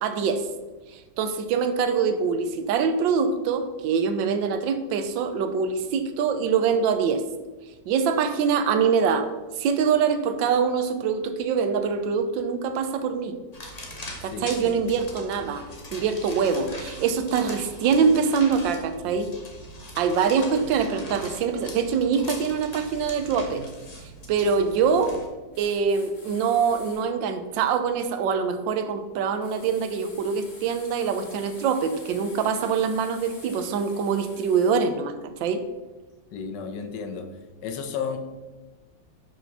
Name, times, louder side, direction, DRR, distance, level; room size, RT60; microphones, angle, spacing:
voice 1, 0.0-0.5 0.9-7.2 7.9-9.3 9.6-13.3 14.2-15.6 15.9-19.3 20.0-23.6 24.3-25.2 25.6-35.1 35.4-35.6, right 6 dB, 80° right, 8 dB, 1.4 m, -24 dB
sound 1, 13.5-25.3, equal, 25° left, 0.9 m, -41 dB
voice 2, 14.3-14.7 16.6-16.7 36.3-37.3 37.6-38.2, left 6 dB, 70° left, 7 dB, 1.4 m, -33 dB
sound 2, 25.5-27.1 29.4-34.8, left 2 dB, 40° left, 1.7 m, -47 dB
6.1 x 5.1 x 5.9 m, 1.2 s
omnidirectional pair, 2.1 m